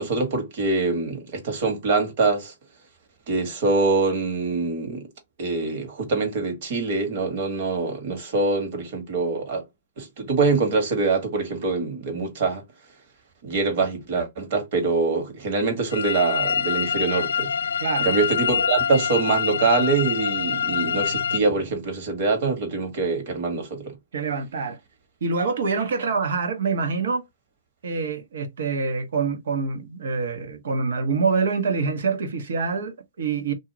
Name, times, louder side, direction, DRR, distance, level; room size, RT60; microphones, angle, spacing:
voice 1, 0.0-2.5 3.3-5.1 5.4-9.6 10.0-12.6 13.4-17.5 18.0-23.9, right 3 dB, 60° right, 1.5 m, -24 dB
sound 1, 15.9-21.4, left 7 dB, 85° left, 0.3 m, -25 dB
voice 2, 17.8-18.1 24.1-24.8 25.2-27.2 27.8-33.5, right 4 dB, 75° right, 1.1 m, -25 dB
2.7 x 2.4 x 2.9 m
hypercardioid pair, 120°, 0 cm